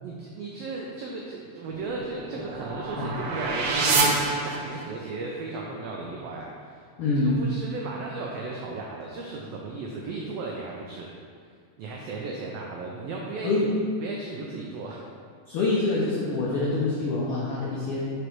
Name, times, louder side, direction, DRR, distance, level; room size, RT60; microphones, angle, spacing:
voice 1, 0.0-11.1 11.4-11.5 11.8-13.7 14.0-15.0, right 3 dB, 90° right, -1 dB, 1.4 m, -36 dB
sound 1, 1.7-5.1, right 3 dB, 75° right, 1.7 m, -27 dB
voice 2, 7.0-7.4 13.4-13.7 15.5-18.1, left 3 dB, 90° left, -5 dB, 1.2 m, -25 dB
5.1 x 4.9 x 4.5 m, 2.1 s
omnidirectional pair, 3.5 m